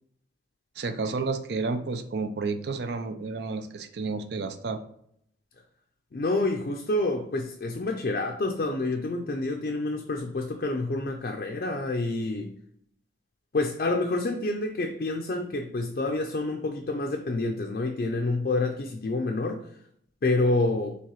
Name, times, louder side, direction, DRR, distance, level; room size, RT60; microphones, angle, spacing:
voice 1, 0.8-4.8, right 4 dB, 70° right, 0.4 m, -31 dB
voice 2, 6.1-12.5 13.5-19.6 20.2-21.0, left 2 dB, 50° left, 0.4 m, -28 dB
4.6 x 3.4 x 2.9 m
head